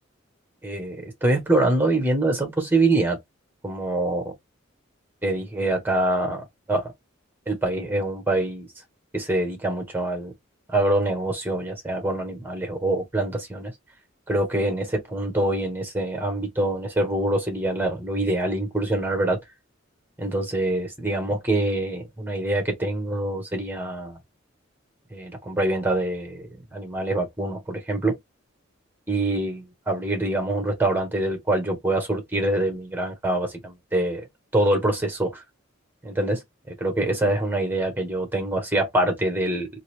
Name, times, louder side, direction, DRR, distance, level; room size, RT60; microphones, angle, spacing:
voice 1, 0.6-3.2 3.6-4.3 5.2-6.4 6.7-6.9 7.5-8.7 9.1-10.3 10.7-13.7 14.3-19.4 20.2-24.2 25.1-28.2 29.1-34.2 34.5-35.4 36.0-36.4 36.7-39.7, right 2 dB, 10° right, 1.2 m, -25 dB
2.7 x 2.6 x 3.2 m
head